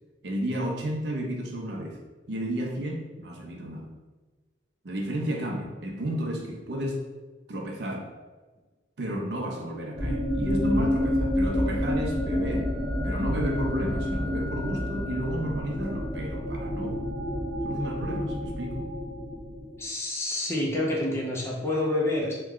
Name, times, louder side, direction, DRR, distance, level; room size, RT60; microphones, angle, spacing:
voice 1, 0.2-2.0 2.3-3.8 4.8-7.0 7.5-8.1 9.0-12.7 13.0-17.1 17.6-18.9, equal, 70° right, 2 dB, 0.6 m, -32 dB
sound 1, 9.9-19.8, left 1 dB, ahead, 1.1 m, -29 dB
voice 2, 19.8-22.3, left 1 dB, 15° left, -3 dB, 0.6 m, -28 dB
3.1 x 2.3 x 3.6 m, 1.3 s
head